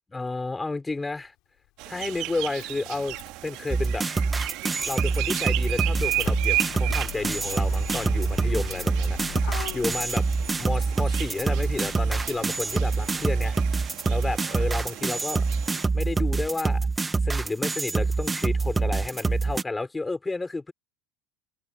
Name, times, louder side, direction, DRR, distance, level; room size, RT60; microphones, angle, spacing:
voice 1, 0.1-1.3 1.9-3.2 3.4-4.1 4.9-10.3 10.6-13.6 14.1-15.4 15.9-16.9 17.2-20.7, left 3 dB, 15° left, 5.4 m, -31 dB
Motor vehicle (road), 0.9-1.0 2.1-13.3, left 21 dB, 60° left, 6.5 m, -41 dB
sound 1, 1.8-15.8, right 20 dB, 65° right, 2.8 m, -35 dB
sound 2, 3.7-19.6, right 4 dB, 15° right, 2.2 m, -26 dB
supercardioid pair, 100°, 0 cm